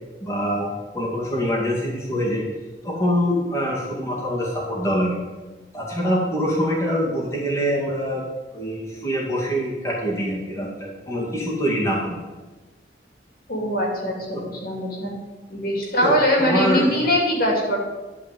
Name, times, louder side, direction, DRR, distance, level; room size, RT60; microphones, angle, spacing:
voice 1, 0.2-0.7 0.9-2.4 2.8-5.2 5.7-8.3 8.5-12.2 14.3-14.4 16.0-17.0, equal, 15° left, -5 dB, 2.2 m, -24 dB
voice 2, 13.5-15.1 15.5-17.8, equal, 55° left, -1 dB, 2.5 m, -22 dB
12.0 x 4.7 x 7.6 m, 1.2 s
head